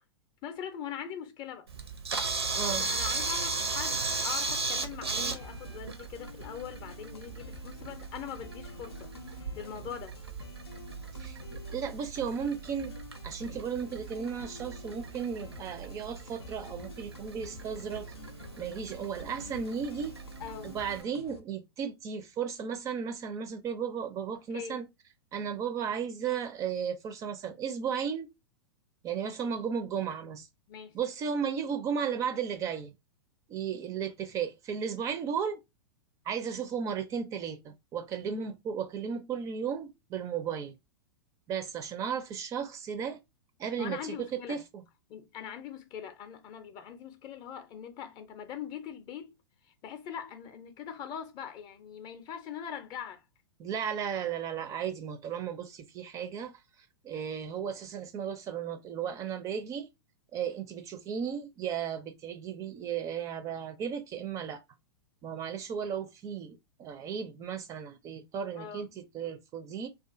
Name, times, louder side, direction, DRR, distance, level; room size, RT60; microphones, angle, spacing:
voice 1, 0.4-1.7 2.5-9.1 9.5-10.2 20.4-20.8 24.5-24.8 30.7-31.0 43.8-44.6 45.1-49.3 49.8-53.2 68.5-68.8, left 8 dB, 35° left, 0.5 m, -42 dB
Camera, 1.7-21.0, right 4 dB, 85° right, 0.6 m, -37 dB
voice 2, 2.6-2.9 11.2-12.9 13.2-18.1 18.6-20.2 20.6-24.9 25.3-28.3 29.0-30.5 30.9-32.9 33.5-35.6 36.3-40.7 41.5-43.2 43.6-44.8 53.6-56.6 57.0-59.9 60.3-64.6 65.2-69.9, right 7 dB, 25° right, 0.4 m, -35 dB
sound 1, 5.4-21.4, left 5 dB, 85° left, 0.4 m, -50 dB
2.4 x 2.4 x 2.4 m
figure-of-eight pair, 100°, 13 cm